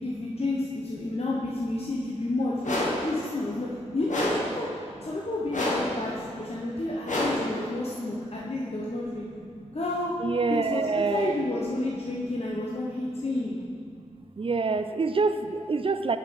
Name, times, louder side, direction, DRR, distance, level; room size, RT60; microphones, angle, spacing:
voice 1, 0.0-4.7 5.0-9.3 9.7-10.1 10.7-13.6, left 2 dB, 55° left, -5 dB, 0.9 m, -31 dB
sound 1, 2.6-3.1 4.1-4.6 5.5-6.0 7.0-7.5, left 1 dB, 90° left, 1.4 m, -27 dB
voice 2, 10.2-11.4 12.6-12.7 13.9-16.2, right 4 dB, 45° right, 9 dB, 0.4 m, -27 dB
7.4 x 4.9 x 5.1 m, 2.3 s
wide cardioid pair, 65°, 13 cm